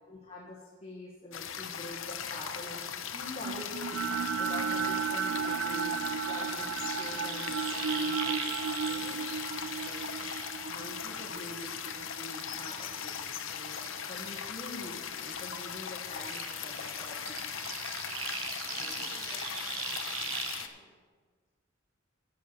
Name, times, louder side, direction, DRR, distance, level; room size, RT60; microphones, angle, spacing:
voice 1, 0.1-2.9 3.1-4.0 4.4-6.0 6.2-8.5 8.8-9.2 9.8-10.0 10.7-17.4 18.8-19.0, left 1 dB, 30° left, -5 dB, 1.6 m, -45 dB
sound 1, 1.3-20.7, left 8 dB, 80° left, 0.8 m, -39 dB
sound 2, 3.4-13.6, right 7 dB, 70° right, 0.3 m, -35 dB
sound 3, 5.7-11.3 11.6-15.0 15.2-20.6, right 5 dB, 90° right, 1.1 m, -41 dB
voice 2, 9.5-10.1 18.6-20.9, left 1 dB, 55° left, -2 dB, 2.2 m, -57 dB
10.0 x 7.3 x 6.8 m, 1.5 s
head